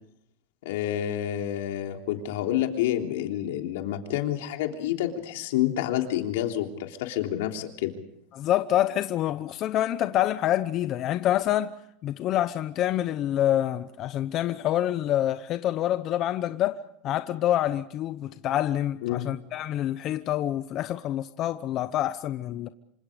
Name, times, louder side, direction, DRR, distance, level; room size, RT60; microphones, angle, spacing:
voice 1, 0.6-7.9 19.0-19.3, left 12 dB, 85° left, 3.3 m, -28 dB
voice 2, 8.3-11.7 12.0-16.8 17.0-22.7, left 12 dB, 40° left, 0.8 m, -26 dB
27.0 x 25.5 x 5.2 m
supercardioid pair, 145°, 0 cm